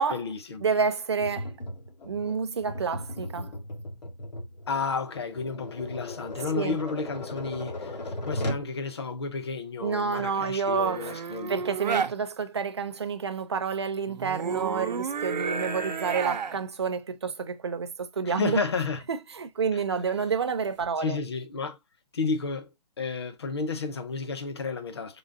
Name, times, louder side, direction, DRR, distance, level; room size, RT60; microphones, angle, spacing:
voice 1, 0.1-0.6 4.7-11.6 18.2-19.0 19.7-19.8 21.0-21.8 22.1-25.2, left 4 dB, 40° left, 0.6 m, -32 dB
voice 2, 0.6-1.5 2.0-3.5 6.5-6.7 9.8-11.1 11.5-18.6 19.1-21.2, right 5 dB, 40° right, 0.5 m, -29 dB
Tap, 1.2-8.7, left 1 dB, 80° left, 1.3 m, -37 dB
sound 1, 10.8-12.1 14.1-16.6 20.6-20.9, right 6 dB, 85° right, 0.7 m, -31 dB
3.8 x 3.6 x 2.5 m
hypercardioid pair, 180°, 21 cm